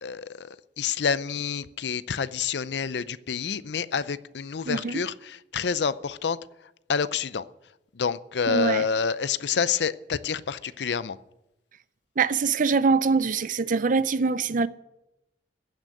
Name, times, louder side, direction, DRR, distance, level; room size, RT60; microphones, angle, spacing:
voice 1, 0.0-0.5 0.8-6.4 6.9-7.5 7.9-11.2, left 6 dB, 70° left, 0.5 m, -28 dB
voice 2, 4.6-5.0 8.5-8.9 12.2-14.7, right 4 dB, 50° right, 0.6 m, -23 dB
15.5 x 6.4 x 9.9 m
head